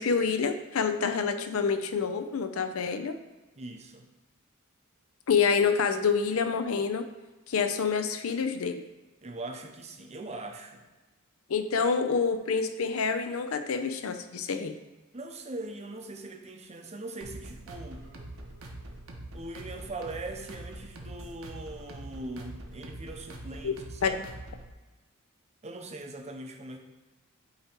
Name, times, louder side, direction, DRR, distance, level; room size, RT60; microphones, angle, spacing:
voice 1, 0.0-3.1 5.3-7.0 7.5-8.8 11.5-14.8 23.6-24.1, left 5 dB, 70° left, 8 dB, 0.5 m, -27 dB
voice 2, 3.6-4.1 9.2-10.8 15.1-18.1 19.3-24.2 25.6-26.8, right 2 dB, 30° right, 3 dB, 0.7 m, -41 dB
sound 1, 17.2-24.7, right 1 dB, 75° right, 0.9 m, -44 dB
8.5 x 3.0 x 4.4 m, 1.2 s
head